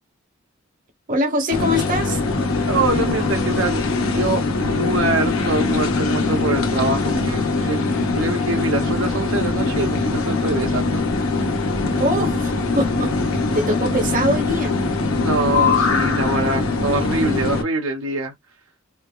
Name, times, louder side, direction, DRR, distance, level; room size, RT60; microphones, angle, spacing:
voice 1, 1.1-2.2 12.0-14.8, equal, 40° right, 0.9 m, -23 dB
sound 1, 1.5-17.6, left 3 dB, 90° left, 0.8 m, -22 dB
voice 2, 2.7-7.8 8.1-11.0 15.2-18.3, right 2 dB, 75° right, 0.7 m, -24 dB
3.2 x 2.0 x 2.2 m
head